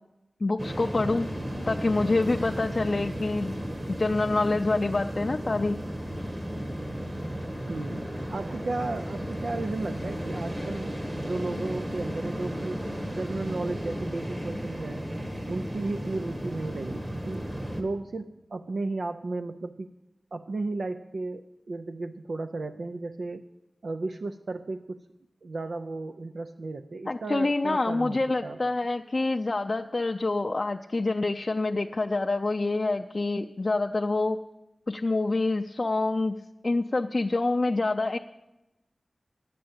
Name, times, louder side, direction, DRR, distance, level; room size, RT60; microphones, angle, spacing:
voice 1, 0.4-1.3 1.7-3.6 3.9-5.8 27.1-34.4 34.9-38.2, left 2 dB, 45° left, 4 dB, 0.4 m, -26 dB
sound 1, 0.6-17.8, equal, 30° right, 1.6 m, -34 dB
voice 2, 7.7-8.0 8.3-15.0 15.5-17.5 17.8-19.9 20.3-23.4 23.8-25.0 25.4-28.6, right 3 dB, 80° right, 8 dB, 0.4 m, -34 dB
10.0 x 7.6 x 8.7 m, 0.95 s
wide cardioid pair, 75°, 0 cm